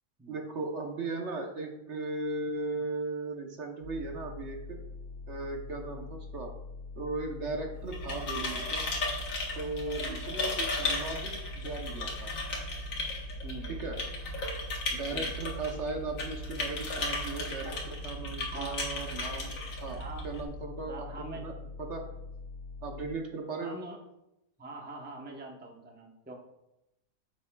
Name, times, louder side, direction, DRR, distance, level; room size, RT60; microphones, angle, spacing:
voice 1, 0.3-4.8 5.3-6.5 7.0-8.9 9.5-12.3 13.7-14.0 14.9-19.5 19.8-22.0 22.8-23.8, right 3 dB, 55° right, 3 dB, 1.1 m, -37 dB
sound 1, 3.8-23.2, left 4 dB, 50° left, 1.5 m, -44 dB
sound 2, 7.8-20.4, left 1 dB, 65° left, 1.7 m, -35 dB
voice 2, 13.4-13.7 15.1-15.3 18.5-18.8 20.0-20.2 20.9-21.4 23.6-24.0 24.6-26.4, right 2 dB, 10° right, 1 dB, 0.7 m, -44 dB
8.9 x 7.4 x 2.3 m, 0.89 s
omnidirectional pair, 1.5 m